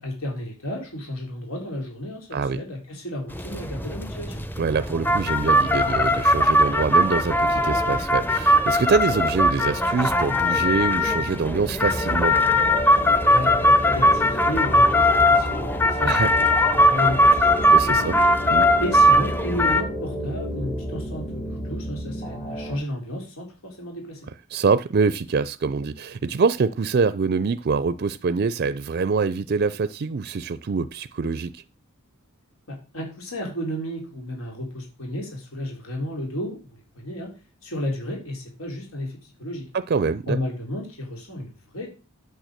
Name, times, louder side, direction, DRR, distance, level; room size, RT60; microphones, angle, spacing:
voice 1, 0.0-4.4 13.2-17.7 18.1-18.2 18.8-24.2 32.7-37.3 37.6-39.7 40.3-41.9, equal, 85° left, 4.2 m, -32 dB
sound 1, 3.3-19.8, left 1 dB, 10° left, 0.7 m, -20 dB
voice 2, 4.6-12.4 16.0-16.3 17.7-18.2 18.5-18.7 24.5-31.6 39.7-40.4, right 4 dB, 50° right, 0.4 m, -24 dB
sound 2, 11.2-22.7, equal, 45° left, 4.7 m, -31 dB
9.1 x 6.7 x 6.6 m
head